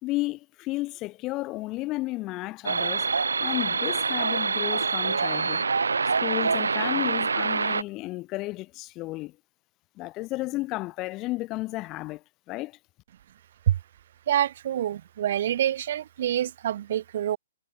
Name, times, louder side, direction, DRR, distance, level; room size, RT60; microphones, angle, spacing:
voice 1, 0.0-3.1 3.4-5.6 6.2-9.4 10.0-12.8, left 19 dB, 25° left, 2.5 m, -33 dB
sound 1, 2.7-7.8, right 4 dB, 70° right, 2.0 m, -25 dB
voice 2, 14.3-17.4, right 11 dB, 50° right, 4.4 m, -26 dB
figure-of-eight pair, 120°, 0 cm